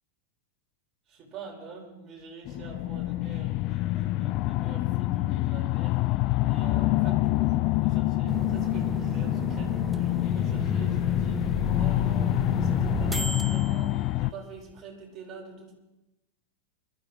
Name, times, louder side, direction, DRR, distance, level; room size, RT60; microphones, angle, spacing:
voice 1, 1.1-6.2 6.4-15.7, right 4 dB, 30° right, -2 dB, 4.9 m, -45 dB
sound 1, 2.4-14.3, left 18 dB, 40° left, 0.4 m, -26 dB
sound 2, 8.3-14.7, right 3 dB, 10° right, 0.6 m, -34 dB
23.5 x 13.5 x 3.2 m, 0.99 s
figure-of-eight pair, 90°, 0 cm